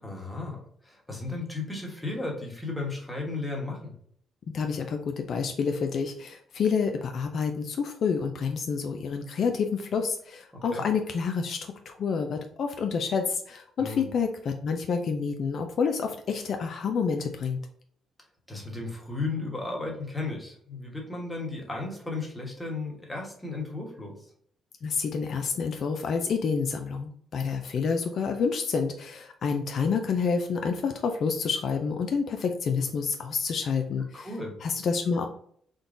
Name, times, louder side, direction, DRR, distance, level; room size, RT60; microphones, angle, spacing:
voice 1, 0.0-3.9 10.5-10.8 13.8-14.1 18.5-24.1 34.1-34.5, left 3 dB, 5° left, -1 dB, 1.2 m, -35 dB
voice 2, 4.5-11.6 11.9-17.6 24.8-34.3 34.6-35.3, left 5 dB, 60° left, 5 dB, 0.4 m, -28 dB
3.7 x 2.2 x 3.7 m, 0.63 s
cardioid pair, 90°, 0 cm